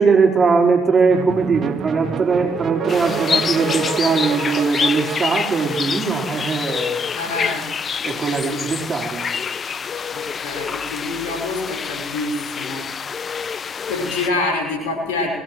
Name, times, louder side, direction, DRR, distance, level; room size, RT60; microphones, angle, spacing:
voice 1, 0.0-7.1 8.0-9.2, right 5 dB, 30° right, -1 dB, 4.2 m, -20 dB
sound 1, 1.1-6.6, right 9 dB, 50° right, 0.8 m, -29 dB
sound 2, 2.9-14.3, left 6 dB, 40° left, 0.4 m, -27 dB
voice 2, 7.1-7.7 8.4-8.6 10.1-12.9 13.9-15.3, left 3 dB, 85° left, 0 dB, 5.4 m, -26 dB
23.0 x 18.0 x 3.2 m, 1.2 s
hypercardioid pair, 70°, 0 cm